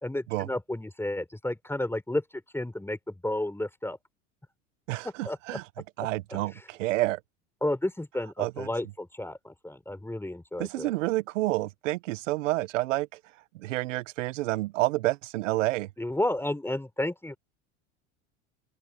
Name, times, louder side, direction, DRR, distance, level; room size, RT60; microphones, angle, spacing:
voice 1, 0.0-2.2 2.5-4.0 5.2-5.6 6.0-6.6 7.6-10.9 16.0-17.4, left 1 dB, 5° left, 4.6 m, -32 dB
voice 2, 4.9-5.6 6.0-7.2 8.4-8.7 10.6-13.1 13.5-15.9, right 18 dB, 80° right, 1.3 m, -29 dB
open air
hypercardioid pair, 85°, 37 cm